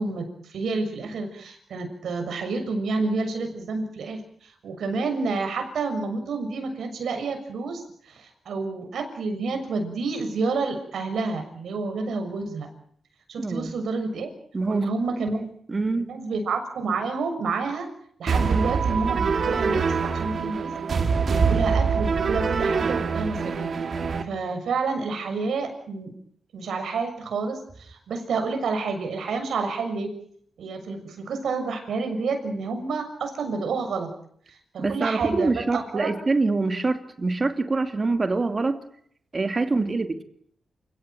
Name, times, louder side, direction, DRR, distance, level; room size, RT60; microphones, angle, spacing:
voice 1, 0.0-12.7 13.3-14.3 14.7-15.4 16.0-17.9 18.2-20.7 21.2-23.7 24.3-26.1 26.5-30.1 30.6-34.1 34.7-36.1 39.7-40.0, right 4 dB, 85° right, 6 dB, 6.6 m, -29 dB
voice 2, 13.4-13.7 14.5-16.1 34.8-38.8 39.3-40.2, right 3 dB, 35° right, 8 dB, 2.6 m, -25 dB
sound 1, 18.3-24.2, right 5 dB, 55° right, 2.6 m, -24 dB
28.5 x 17.0 x 9.3 m, 0.66 s
wide cardioid pair, 105°, 0 cm